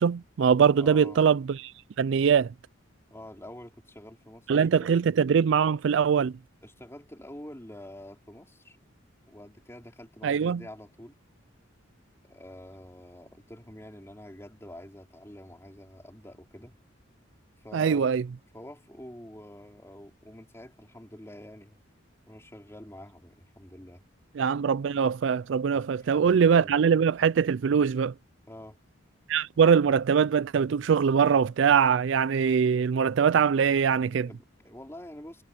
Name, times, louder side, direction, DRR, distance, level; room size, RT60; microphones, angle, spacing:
voice 1, 0.0-1.7 2.0-2.5 4.5-6.3 10.2-10.6 17.7-18.2 24.4-28.1 29.3-34.3, right 7 dB, 65° right, 0.4 m, -22 dB
voice 2, 0.7-1.2 3.1-4.9 6.6-8.8 9.3-11.2 12.2-16.8 17.6-18.1 18.5-21.8 22.3-24.0 25.7-26.8 28.5-28.8 34.2-35.4, left 1 dB, 15° left, 4.2 m, -47 dB
head